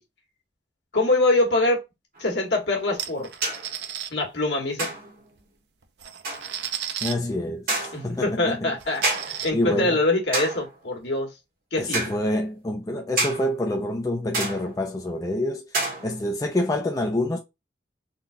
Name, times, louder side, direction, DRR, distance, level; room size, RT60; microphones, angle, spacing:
voice 1, 0.9-1.8 2.2-3.3 4.1-4.9 7.9-11.3 11.7-12.1, left 2 dB, 75° left, 1.5 m, -24 dB
sound 1, 2.2-2.3 3.4-3.8 4.8-5.3 6.2-6.5 7.7-8.1 9.0-9.5 10.3-10.8 11.9-12.2 13.2-13.5 14.3-14.9 15.7-16.3, right 2 dB, 50° right, 1.4 m, -28 dB
sound 2, 3.0-4.1 5.4-5.5 5.8-7.1 7.8-7.9 8.3-8.4 8.8-9.5, right 10 dB, 65° right, 0.5 m, -34 dB
voice 2, 7.0-8.7 9.5-10.0 11.8-15.7 16.0-17.4, left 1 dB, 20° left, 0.4 m, -27 dB
3.8 x 2.3 x 2.5 m
head